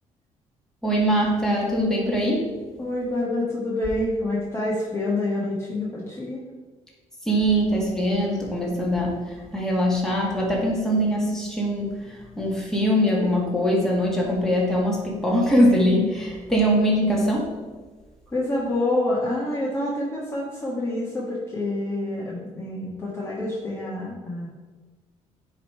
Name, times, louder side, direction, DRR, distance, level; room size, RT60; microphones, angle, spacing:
voice 1, 0.8-2.5 7.3-9.2 9.5-11.9 12.4-17.5, equal, 5° left, -4 dB, 1.9 m, -22 dB
voice 2, 2.8-6.5 18.3-24.5, left 1 dB, 20° left, -6 dB, 1.4 m, -27 dB
9.9 x 3.4 x 4.6 m, 1.3 s
cardioid pair, 115°, 13 cm